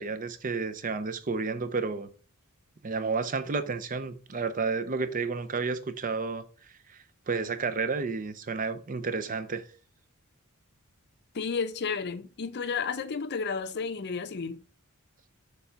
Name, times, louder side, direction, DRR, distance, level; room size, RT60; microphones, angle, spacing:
voice 1, 0.0-2.1 2.8-6.4 7.3-9.6, right 4 dB, 40° right, 0.6 m, -31 dB
voice 2, 11.3-14.6, left 5 dB, 50° left, 0.6 m, -32 dB
7.0 x 3.4 x 5.6 m
head